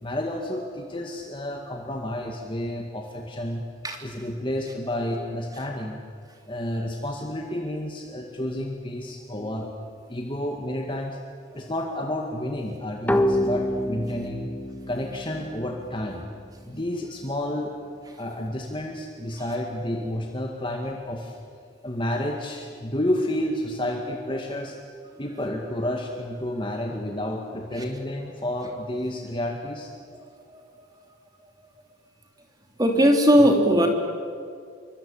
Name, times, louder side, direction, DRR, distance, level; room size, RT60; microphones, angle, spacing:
voice 1, 0.0-3.6 4.0-6.0 6.5-9.7 10.1-11.2 11.5-14.5 14.9-16.3 16.7-17.7 18.2-21.4 21.8-24.8 25.2-29.9, left 1 dB, 25° left, 1 dB, 1.9 m, -30 dB
sound 1, 13.1-16.6, left 1 dB, 10° left, 1.4 m, -27 dB
voice 2, 32.8-33.9, equal, 20° right, 2 dB, 3.0 m, -18 dB
27.0 x 24.0 x 8.8 m, 2.2 s
head